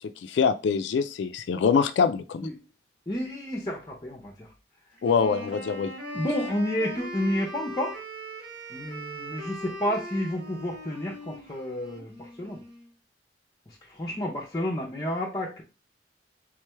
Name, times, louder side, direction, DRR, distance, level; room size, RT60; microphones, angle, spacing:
voice 1, 0.2-2.5 5.0-5.9, left 6 dB, 80° left, 10 dB, 0.3 m, -24 dB
voice 2, 3.1-4.5 6.1-8.0 8.7-12.6 13.9-15.6, left 1 dB, 25° left, 1 dB, 0.5 m, -30 dB
Wind instrument woodwind instrument, 5.0-12.9, equal, 70° right, 1.7 m, -40 dB
3.7 x 3.2 x 3.3 m, 0.32 s
head